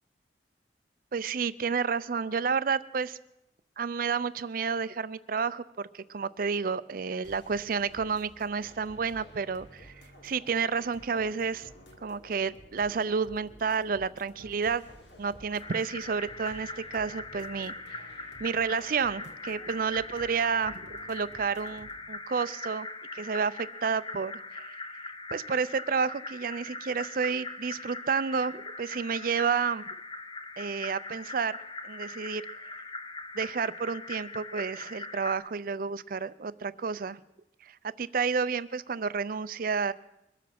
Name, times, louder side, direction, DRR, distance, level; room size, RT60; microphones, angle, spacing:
voice 1, 1.1-3.2 3.8-11.7 12.0-14.8 15.2-20.8 21.1-22.9 23.1-24.8 25.3-29.8 30.6-31.6 31.8-32.8 33.3-37.2 37.6-39.9, right 5 dB, 50° right, 16 dB, 0.5 m, -30 dB
sound 1, 7.2-22.0, equal, 85° left, 2.3 m, -53 dB
sound 2, 15.6-35.4, left 3 dB, 25° left, 0.7 m, -41 dB
22.5 x 7.6 x 5.9 m, 0.88 s
head